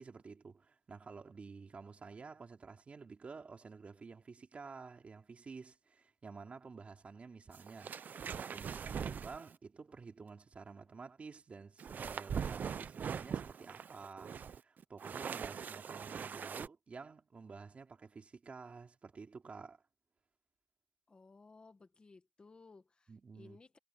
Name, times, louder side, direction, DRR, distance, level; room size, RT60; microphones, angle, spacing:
voice 1, 0.0-7.9 8.3-19.8 23.1-23.6, right 4 dB, 50° right, 3.3 m, -51 dB
sound 1, 7.5-9.6 11.8-16.7, right 7 dB, 90° right, 0.6 m, -42 dB
voice 2, 21.1-23.8, left 3 dB, 35° left, 1.5 m, -59 dB
wide cardioid pair, 175°, 3 cm